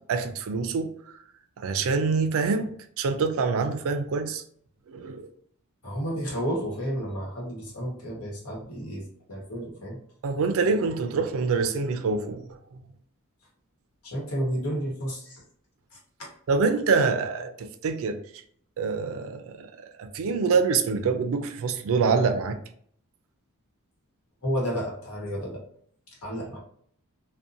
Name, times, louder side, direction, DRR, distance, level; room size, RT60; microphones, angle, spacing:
voice 1, 0.1-0.9 1.6-4.4 4.9-5.2 10.2-12.5 16.5-18.2 18.8-19.7 20.0-22.6, right 4 dB, 65° right, 0.4 m, -25 dB
voice 2, 5.8-10.0 14.0-15.4 24.4-25.6 26.2-26.6, equal, 75° left, 1.1 m, -31 dB
2.6 x 2.1 x 2.4 m
head